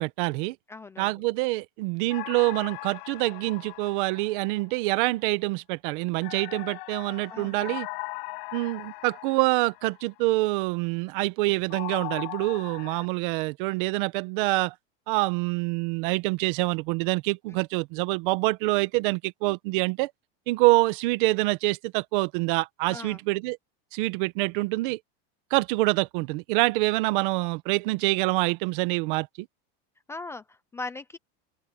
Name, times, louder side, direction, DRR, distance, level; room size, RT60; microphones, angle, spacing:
voice 1, 0.0-0.5 1.0-7.9 8.5-14.7 15.1-20.1 20.5-23.6 23.9-25.0 25.5-29.5, right 22 dB, 55° right, 1.1 m, -26 dB
voice 2, 0.7-1.1 7.3-7.8 22.9-23.2 30.1-31.2, left 3 dB, 10° left, 0.5 m, -39 dB
sound 1, 2.1-4.9 6.2-10.0 11.7-13.1, left 26 dB, 60° left, 7.3 m, -39 dB
open air
supercardioid pair, 175°, 31 cm